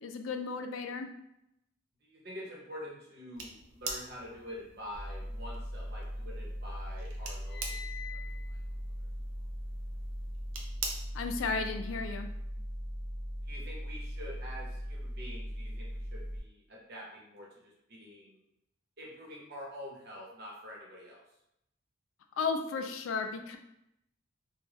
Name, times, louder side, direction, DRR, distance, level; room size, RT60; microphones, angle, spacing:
voice 1, 0.0-1.1 11.1-12.3 22.4-23.6, left 4 dB, 80° left, 6 dB, 0.3 m, -34 dB
voice 2, 2.0-8.1 8.5-8.6 13.4-18.4 19.0-21.2, equal, 55° right, -3 dB, 0.8 m, -46 dB
sound 1, 3.3-11.5, right 4 dB, 90° right, 0.5 m, -45 dB
sound 2, 4.9-16.4, equal, 5° right, 0.4 m, -39 dB
sound 3, 5.5-6.5 6.8-10.3, left 7 dB, 35° left, 0.8 m, -48 dB
2.4 x 2.1 x 3.2 m, 0.82 s
head